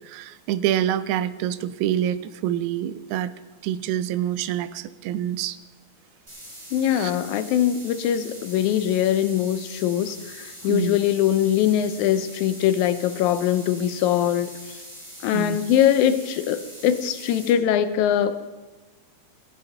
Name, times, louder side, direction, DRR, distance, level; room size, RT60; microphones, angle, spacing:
voice 1, 0.1-3.3 3.6-5.6 6.9-7.1 10.6-11.0 15.3-15.6, right 11 dB, 85° right, 15 dB, 2.0 m, -26 dB
sound 1, 6.3-17.5, equal, 10° right, 2.2 m, -42 dB
voice 2, 6.7-14.8 15.2-18.5, left 10 dB, 85° left, 12 dB, 2.0 m, -22 dB
17.5 x 8.7 x 3.9 m, 1.3 s
omnidirectional pair, 3.3 m